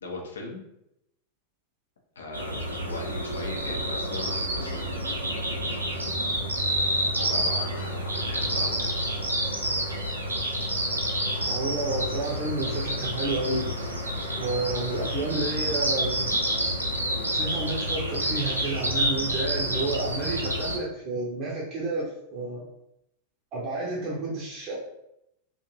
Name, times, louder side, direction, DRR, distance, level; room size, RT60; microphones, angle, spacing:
voice 1, 0.0-0.6 2.2-4.9 5.2-5.3 7.2-8.9, left 3 dB, 65° left, 1 dB, 0.6 m, -38 dB
sound 1, 2.3-20.8, equal, 85° right, 0.4 m, -28 dB
voice 2, 11.5-13.7 14.4-16.4 17.3-22.7 23.5-24.8, right 2 dB, 35° right, -5 dB, 0.6 m, -30 dB
2.5 x 2.2 x 2.9 m, 0.82 s
figure-of-eight pair, 90°, 0 cm